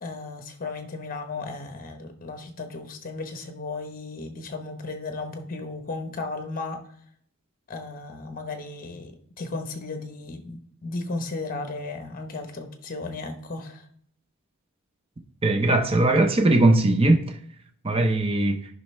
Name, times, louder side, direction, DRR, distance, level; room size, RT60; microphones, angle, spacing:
voice 1, 0.0-6.8 7.7-9.1 9.4-13.8, left 3 dB, 40° left, 1.0 m, -35 dB
voice 2, 15.4-17.2 17.8-18.6, right 2 dB, 25° right, 0.7 m, -19 dB
10.5 x 5.5 x 3.2 m
head